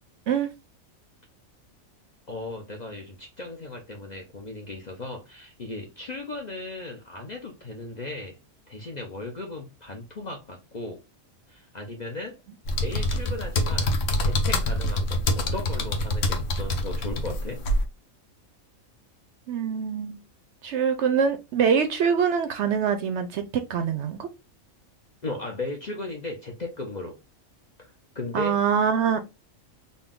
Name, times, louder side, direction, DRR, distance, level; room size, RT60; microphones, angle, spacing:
voice 1, 2.3-8.4 8.7-11.0 11.5-12.4 12.8-13.9 14.2-17.6 25.2-27.2 27.8-28.6, left 2 dB, 45° left, 0.6 m, -36 dB
sound 1, 12.7-17.8, left 1 dB, 65° left, 1.1 m, -25 dB
voice 2, 19.5-20.2 20.6-24.3 28.3-29.2, right 7 dB, 65° right, 0.7 m, -24 dB
4.0 x 2.3 x 3.5 m
omnidirectional pair, 1.4 m